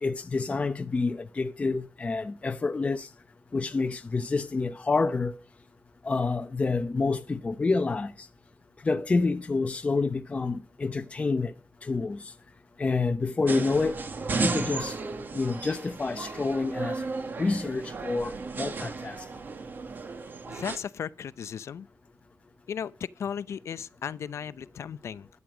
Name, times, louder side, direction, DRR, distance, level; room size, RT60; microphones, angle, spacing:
voice 1, 0.0-3.1 3.5-5.3 6.0-8.1 8.9-11.5 11.9-12.2 12.8-14.0 14.4-14.9 15.3-17.0 17.4-19.2, left 3 dB, 25° left, 0.8 m, -28 dB
sound 1, 13.5-20.8, right 4 dB, 40° right, 1.8 m, -34 dB
voice 2, 20.5-21.9 22.7-25.3, left 8 dB, 60° left, 0.7 m, -36 dB
15.5 x 11.0 x 5.0 m
wide cardioid pair, 160°, 5 cm